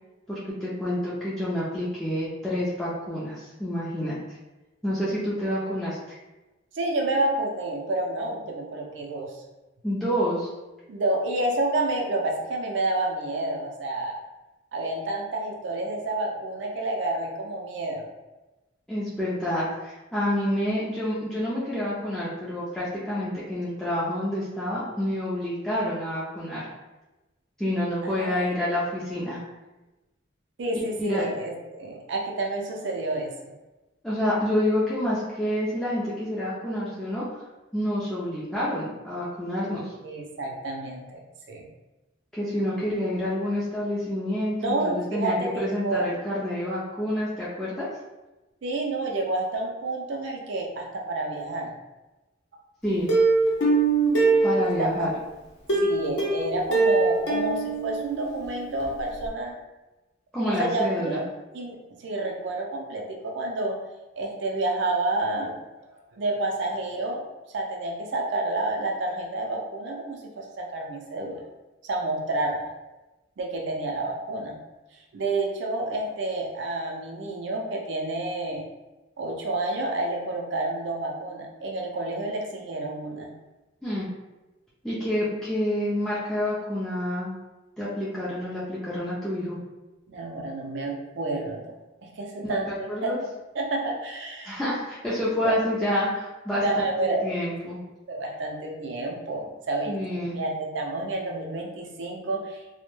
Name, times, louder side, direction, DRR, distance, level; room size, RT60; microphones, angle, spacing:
voice 1, 0.3-4.2 4.8-6.0 9.8-10.5 18.9-26.6 27.6-29.4 31.0-31.3 34.0-37.3 37.7-39.9 42.3-47.9 52.8-53.1 54.4-55.1 60.3-61.2 83.8-84.1 84.8-87.3 87.8-89.6 92.4-93.2 94.4-96.6 97.2-97.8 99.9-100.4, left 1 dB, 5° left, -10 dB, 0.4 m, -28 dB
voice 2, 6.7-9.4 10.9-14.2 14.7-18.1 28.0-28.5 30.6-33.3 40.0-41.2 41.5-41.7 44.6-46.0 48.6-51.7 54.8-55.1 55.8-59.6 60.5-61.2 61.5-63.8 64.2-65.6 66.2-67.2 67.5-71.5 71.8-72.7 73.4-74.6 75.1-78.6 79.2-83.3 90.1-91.8 92.0-93.3 93.5-94.6 95.4-95.5 96.6-97.2 98.1-100.0 100.3-102.6, right 2 dB, 70° right, 0 dB, 0.4 m, -29 dB
Plucked string instrument, 53.1-55.1 55.7-58.5 58.8-58.9 59.3-59.4, right 3 dB, 65° left, 0.6 m, -23 dB
2.1 x 2.1 x 3.0 m, 1.1 s
head